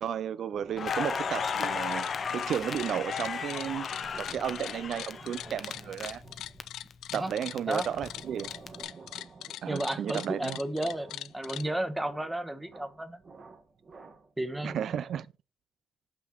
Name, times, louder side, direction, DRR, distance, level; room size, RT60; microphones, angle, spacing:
voice 1, 0.0-3.9 4.2-6.2 7.1-8.5 9.6-10.6 14.6-15.3, right 9 dB, 65° right, 0.3 m, -33 dB
sound 1, 0.5-15.2, right 4 dB, 40° right, 1.3 m, -52 dB
Crackle, 0.8-6.6 6.9-8.7, left 6 dB, 45° left, 0.7 m, -35 dB
sound 2, 1.5-1.7 1.9-11.6, left 13 dB, 85° left, 0.3 m, -42 dB
voice 2, 9.7-13.2 14.4-14.8, right 1 dB, 10° right, 1.0 m, -33 dB
5.9 x 5.6 x 4.4 m
cardioid pair, 90°, 0 cm